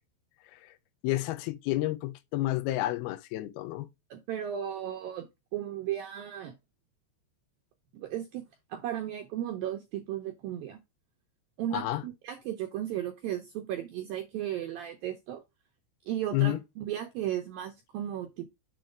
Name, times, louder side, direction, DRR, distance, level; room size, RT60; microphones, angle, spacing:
voice 1, 1.0-3.9 11.7-12.0 16.3-16.6, left 16 dB, 75° left, 2.5 m, -30 dB
voice 2, 4.1-6.5 7.9-8.4 8.7-10.8 11.6-15.4 16.1-18.5, right 11 dB, 75° right, 2.1 m, -35 dB
7.6 x 3.1 x 5.1 m
omnidirectional pair, 5.3 m